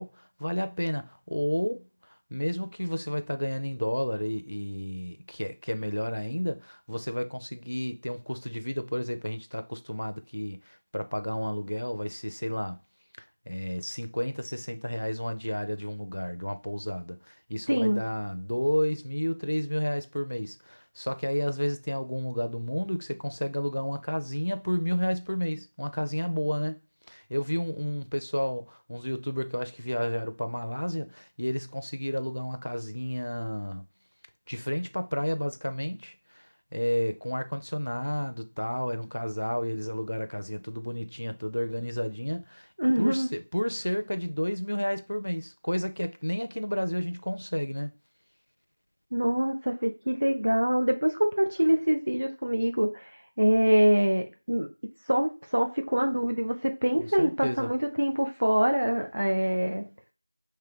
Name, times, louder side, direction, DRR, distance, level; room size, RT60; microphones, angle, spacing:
voice 1, 0.0-12.8 13.2-26.8 27.1-33.9 34.5-42.7 43.0-47.9 57.0-57.7, equal, 55° left, 0.5 m, -31 dB
voice 2, 17.7-18.0 42.8-43.3 49.1-53.1 53.4-54.7 55.1-59.8, equal, 35° right, 0.5 m, -25 dB
3.3 x 3.2 x 3.5 m
figure-of-eight pair, 180°, 0 cm